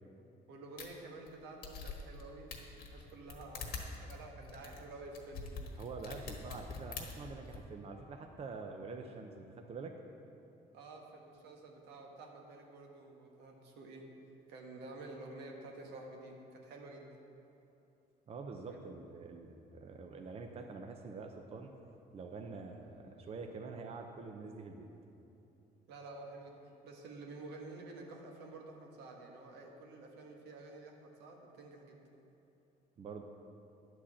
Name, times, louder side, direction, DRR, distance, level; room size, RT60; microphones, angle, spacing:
voice 1, 0.5-2.5 2.9-5.5 10.7-14.0 14.5-17.2 18.7-18.8 25.9-32.0, right 2 dB, 85° right, 1 dB, 1.4 m, -50 dB
sound 1, 0.8-0.9 1.3-1.4 1.6-2.2 2.5-7.6, left 5 dB, 65° left, 1.4 m, -45 dB
voice 2, 5.8-9.9 18.3-21.7 22.1-24.9 33.0-33.2, right 4 dB, 35° right, 4 dB, 0.7 m, -46 dB
9.9 x 4.6 x 7.3 m, 2.9 s
cardioid pair, 110°, 17 cm